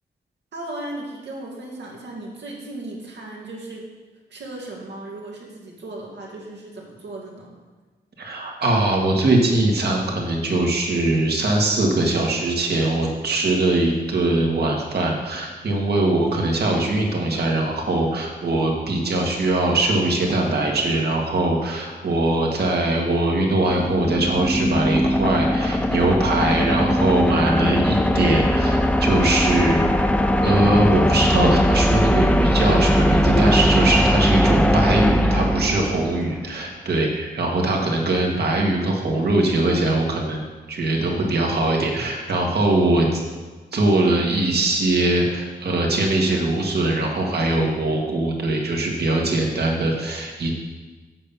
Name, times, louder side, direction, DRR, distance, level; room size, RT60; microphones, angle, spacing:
voice 1, 0.5-3.9 4.3-7.5, right 2 dB, 85° right, -2 dB, 2.2 m, -36 dB
voice 2, 8.2-43.2 43.7-50.6, right 2 dB, 70° right, 0 dB, 1.9 m, -21 dB
sound 1, 23.3-36.4, equal, 5° left, 0.5 m, -20 dB
8.3 x 5.7 x 7.0 m, 1.3 s
wide cardioid pair, 95°, 17 cm